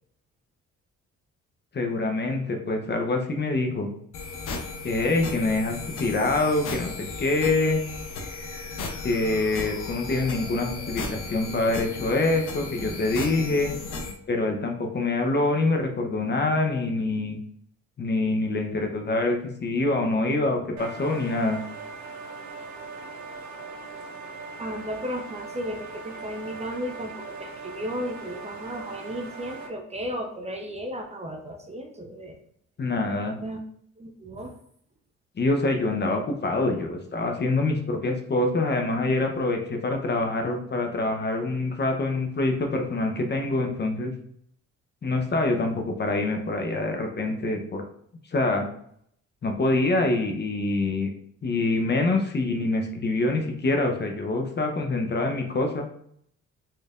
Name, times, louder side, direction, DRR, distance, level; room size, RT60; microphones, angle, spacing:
voice 1, 1.7-3.9 4.8-6.9 7.2-7.8 9.0-13.8 14.3-17.4 18.0-21.6 32.8-33.4 35.4-44.1 45.0-47.8 48.3-48.7 49.4-51.1 51.4-55.9, left 2 dB, 35° left, 3 dB, 0.8 m, -25 dB
sound 1, 4.1-14.1, left 3 dB, 90° left, 0.8 m, -35 dB
sound 2, 20.8-29.7, right 4 dB, 70° right, 0.8 m, -40 dB
voice 2, 24.6-32.4 33.4-33.6 34.0-34.6, equal, 20° right, 3 dB, 0.7 m, -34 dB
4.4 x 3.2 x 2.4 m, 0.67 s
cardioid pair, 90°, 30 cm